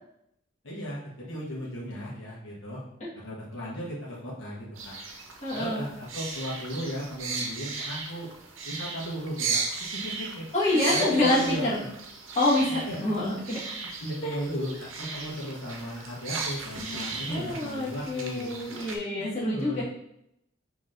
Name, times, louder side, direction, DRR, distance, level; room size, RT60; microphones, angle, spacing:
voice 1, 0.6-2.8 3.2-5.0 5.5-8.3 8.6-9.6 9.9-11.9 12.7-13.1 14.0-18.7 19.2-19.8, equal, 75° left, -6 dB, 1.2 m, -36 dB
sound 1, 4.8-19.0, right 4 dB, 85° right, 0.7 m, -36 dB
voice 2, 5.4-5.9 10.5-11.8 12.3-13.6 14.2-14.7 17.3-19.8, left 2 dB, 35° left, -9 dB, 1.5 m, -27 dB
5.9 x 3.0 x 2.5 m, 0.80 s
head